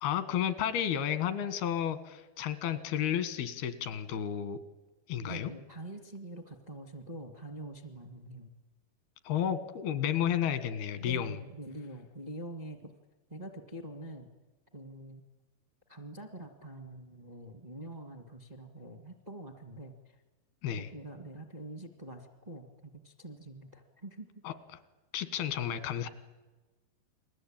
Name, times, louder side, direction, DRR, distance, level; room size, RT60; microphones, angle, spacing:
voice 1, 0.0-4.6 5.1-5.5 9.3-11.4 20.6-20.9 24.4-24.5 25.1-26.1, left 9 dB, 85° left, 12 dB, 3.5 m, -32 dB
voice 2, 5.2-8.5 11.0-12.9 13.3-14.3 14.7-15.2 15.9-20.2 20.8-24.3, right 1 dB, 40° right, 7 dB, 0.5 m, -45 dB
29.5 x 21.5 x 8.9 m, 1.2 s
omnidirectional pair, 4.3 m